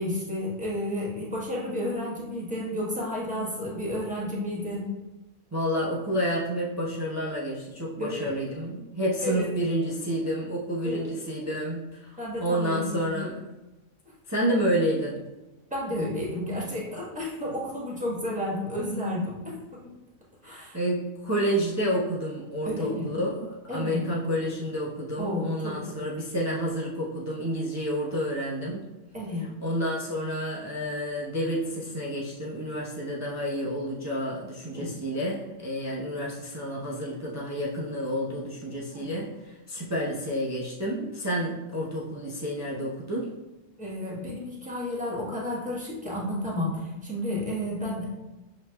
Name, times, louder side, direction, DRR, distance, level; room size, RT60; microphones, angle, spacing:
voice 1, 0.0-4.9 8.0-8.3 9.2-9.5 10.8-11.0 12.2-13.3 15.7-19.9 20.4-20.8 22.6-23.1 23.7-24.0 25.2-25.7 29.1-29.5 34.7-34.9 38.9-39.1 43.8-48.1, left 1 dB, 5° right, -5 dB, 1.0 m, -32 dB
voice 2, 5.5-12.1 12.4-13.3 14.3-15.2 20.4-28.8 29.6-43.3, equal, 25° right, -6 dB, 0.3 m, -29 dB
6.2 x 2.9 x 2.2 m, 1.1 s
omnidirectional pair, 1.3 m